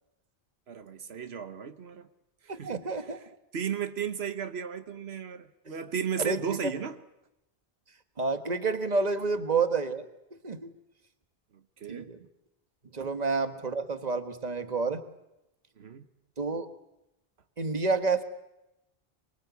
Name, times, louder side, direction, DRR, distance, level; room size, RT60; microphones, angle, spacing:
voice 1, 0.7-2.1 2.4-3.2 3.5-7.0 11.8-12.1 13.0-13.1 15.8-16.1, right 7 dB, 90° right, 1.3 m, -35 dB
voice 2, 2.5-3.2 6.2-6.7 8.2-10.0 10.4-10.7 11.9-12.2 12.9-15.0 16.4-16.7 17.6-18.2, right 4 dB, 40° right, 1.7 m, -29 dB
24.0 x 23.5 x 8.3 m
omnidirectional pair, 1.0 m